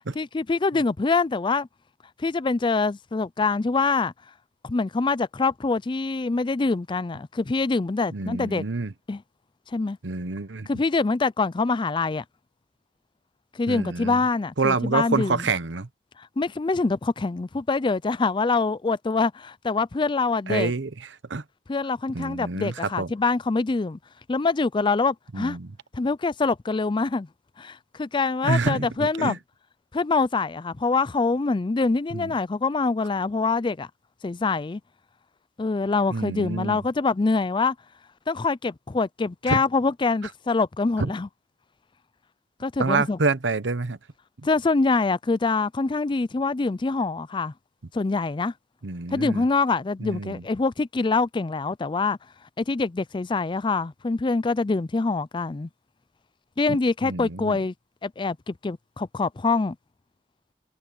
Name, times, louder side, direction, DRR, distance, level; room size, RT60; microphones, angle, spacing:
voice 1, 0.2-1.7 2.2-4.1 4.6-8.6 9.1-9.2 9.7-10.0 10.7-12.2 13.5-15.4 16.2-20.7 21.7-24.0 24.3-25.6 25.9-27.3 27.6-29.4 29.9-33.9 34.2-34.8 35.6-37.7 38.3-41.3 42.6-43.2 44.4-47.5 47.9-48.5 49.1-52.2 52.6-55.7 56.6-57.7 58.0-59.8, left 3 dB, 25° left, 0.4 m, -25 dB
voice 2, 8.1-8.9 10.0-10.7 13.7-14.2 14.6-15.9 20.5-20.9 21.3-21.4 22.1-23.1 25.3-25.7 28.4-29.4 32.1-32.3 36.1-36.8 39.5-39.6 41.0-41.1 42.8-44.0 48.8-49.4 50.0-50.4 56.7-56.8 57.0-57.6, right 3 dB, 90° right, 1.0 m, -27 dB
head